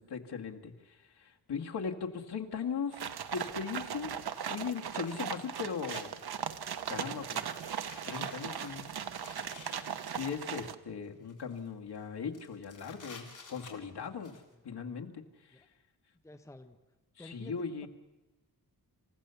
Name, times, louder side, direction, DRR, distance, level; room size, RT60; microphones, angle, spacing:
voice 1, 0.1-2.9 3.3-4.1 4.5-6.1 6.9-7.4 8.0-8.9 10.2-14.3 14.6-15.2 17.2-17.9, left 6 dB, 80° left, 2 dB, 1.9 m, -38 dB
sound 1, 2.9-10.7, right 8 dB, 75° right, 1.0 m, -38 dB
sound 2, 4.8-6.0 6.5-6.9 7.4-10.3 11.0-11.7 11.9-12.0 12.3-14.4, left 4 dB, 50° left, 3.5 m, -52 dB
voice 2, 16.2-16.8 17.2-17.9, left 1 dB, 10° left, 7 dB, 0.9 m, -51 dB
27.5 x 15.5 x 7.0 m, 1.1 s
wide cardioid pair, 145°, 39 cm